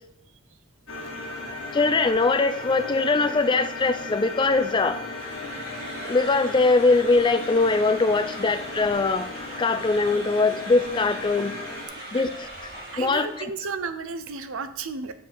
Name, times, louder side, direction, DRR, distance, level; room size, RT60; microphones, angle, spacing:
sound 1, 0.9-11.9, left 2 dB, 70° left, 1.7 m, -36 dB
voice 1, 1.7-5.0 6.0-9.3 9.6-11.6 12.1-12.5 13.0-13.5, left 3 dB, 20° left, 10 dB, 0.4 m, -22 dB
sound 2, 5.1-13.5, right 1 dB, 45° right, 2.4 m, -40 dB
voice 2, 12.8-15.1, right 4 dB, 75° right, 11 dB, 0.6 m, -33 dB
7.4 x 4.6 x 4.3 m, 0.85 s
head